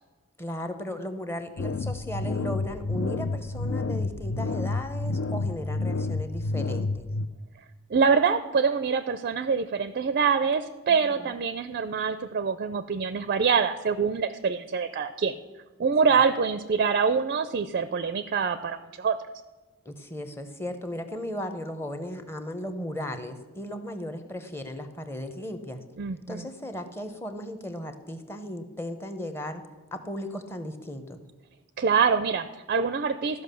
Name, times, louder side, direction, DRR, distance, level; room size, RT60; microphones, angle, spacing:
voice 1, 0.4-7.1 10.9-11.4 19.8-25.8 26.3-29.6 29.9-31.2, left 1 dB, 10° left, 8 dB, 0.8 m, -36 dB
sound 1, 1.6-7.3, left 3 dB, 65° left, 0.5 m, -29 dB
voice 2, 7.9-15.3 15.8-19.2 26.0-26.4 31.8-33.4, right 5 dB, 45° right, 12 dB, 0.4 m, -25 dB
13.5 x 5.6 x 6.8 m, 1.2 s
head